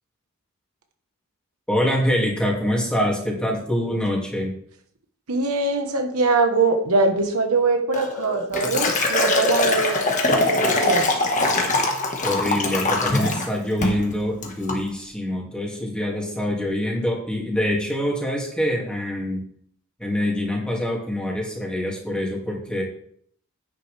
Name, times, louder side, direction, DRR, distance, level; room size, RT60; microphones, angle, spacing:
voice 1, 1.7-4.6 12.2-19.5 20.0-22.8, left 1 dB, 5° left, -2 dB, 2.3 m, -25 dB
voice 2, 5.3-10.0 10.3-11.2, right 3 dB, 75° right, 5 dB, 1.2 m, -22 dB
Liquid, 7.9-13.5 13.8-14.1 14.4-14.8, left 2 dB, 35° left, 1.5 m, -22 dB
10.0 x 9.0 x 3.4 m, 0.65 s
head